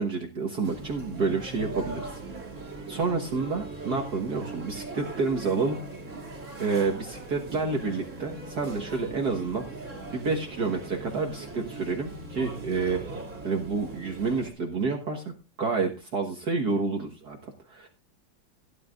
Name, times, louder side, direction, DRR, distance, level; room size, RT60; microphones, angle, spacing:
voice 1, 0.0-2.2 2.9-5.8 6.6-9.6 10.1-13.0 13.4-15.2 15.6-17.9, right 4 dB, 55° right, 1 dB, 1.9 m, -29 dB
sound 1, 0.6-14.5, right 2 dB, 35° right, 3.0 m, -40 dB
17.0 x 11.0 x 2.5 m, 0.29 s
omnidirectional pair, 2.2 m